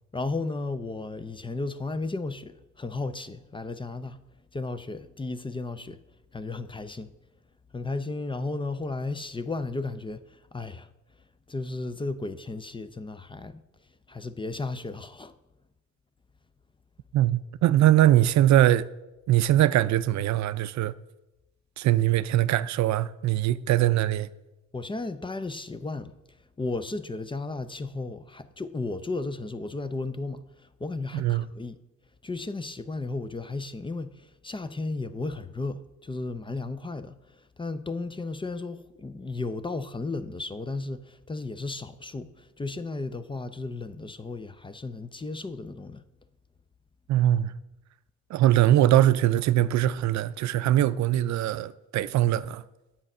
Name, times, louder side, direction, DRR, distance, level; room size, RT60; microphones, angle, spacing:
voice 1, 0.1-4.2 4.5-6.0 6.3-7.1 7.7-10.9 11.5-13.6 14.1-15.3 24.7-26.1 26.6-31.8 32.2-46.0, left 3 dB, 15° left, 0.5 m, -34 dB
voice 2, 17.1-18.9 19.3-20.9 21.8-24.3 31.1-31.4 47.1-47.5 48.3-52.6, right 13 dB, 65° right, 0.4 m, -22 dB
8.8 x 7.2 x 5.4 m
cardioid pair, 90°, 30 cm